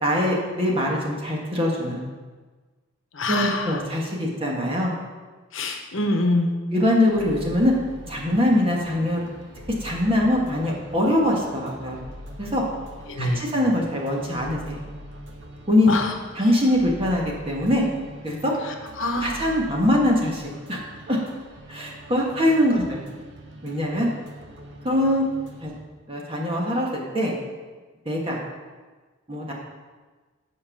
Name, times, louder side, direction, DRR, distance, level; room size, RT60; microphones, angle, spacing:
voice 1, 0.0-2.0 3.3-4.9 6.7-7.7 8.1-9.2 9.8-12.0 12.4-12.6 13.2-14.8 15.7-15.9 16.4-17.9 18.2-18.5 19.2-20.8 21.1-21.2 21.7-23.0 23.6-24.1 24.8-25.2 25.6-25.7 26.1-27.3 28.0-28.4 29.3-29.5, left 1 dB, 25° right, -2 dB, 1.5 m, -23 dB
voice 2, 3.1-3.8 5.5-6.6 13.1-13.5 15.9-16.1 18.7-19.4 22.7-22.9, left 2 dB, 70° left, 4 dB, 1.0 m, -25 dB
sound 1, 7.1-25.8, equal, 60° right, 1.0 m, -43 dB
7.7 x 5.4 x 6.0 m, 1.4 s
head